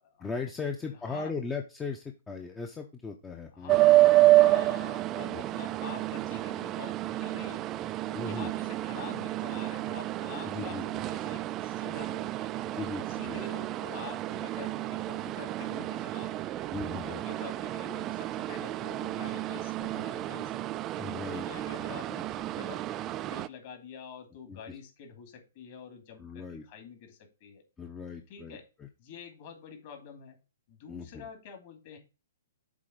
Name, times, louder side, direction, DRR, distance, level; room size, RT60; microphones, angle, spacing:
voice 1, 0.2-4.0 8.1-8.5 10.4-10.8 12.7-13.4 16.7-17.2 21.0-21.5 24.5-24.6 26.2-26.6 27.8-28.9 30.9-31.2, left 4 dB, 10° left, 3 dB, 0.7 m, -38 dB
voice 2, 0.9-1.3 3.5-7.6 8.1-12.5 13.1-16.4 17.0-20.8 21.3-27.6 28.3-28.6 29.0-30.4 30.7-32.0, left 6 dB, 45° left, 4 dB, 2.6 m, -47 dB
sound 1, 3.7-23.5, right 16 dB, 25° right, 0.3 m, -29 dB
7.4 x 3.8 x 5.1 m, 0.31 s
hypercardioid pair, 150°, 0 cm